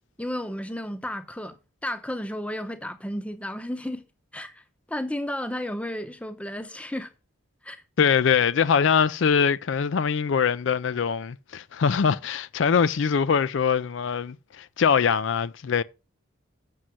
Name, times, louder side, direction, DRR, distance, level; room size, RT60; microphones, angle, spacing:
voice 1, 0.2-1.6 1.8-4.0 4.3-7.1 7.6-7.8, left 1 dB, 5° left, 0.7 m, -33 dB
voice 2, 8.0-15.8, left 6 dB, 65° left, 0.4 m, -23 dB
7.6 x 6.4 x 5.6 m
head